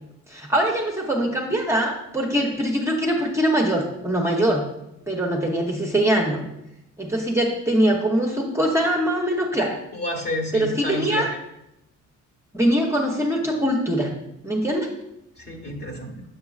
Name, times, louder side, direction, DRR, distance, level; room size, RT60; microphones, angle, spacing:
voice 1, 0.3-4.6 5.1-6.5 7.0-9.8 10.5-11.4 12.5-14.1 14.4-14.9, right 1 dB, 10° right, -1 dB, 0.8 m, -22 dB
voice 2, 9.9-11.3 15.4-16.2, left 1 dB, 35° left, 3 dB, 1.4 m, -30 dB
6.9 x 6.7 x 2.4 m, 0.86 s
cardioid pair, 90°, 30 cm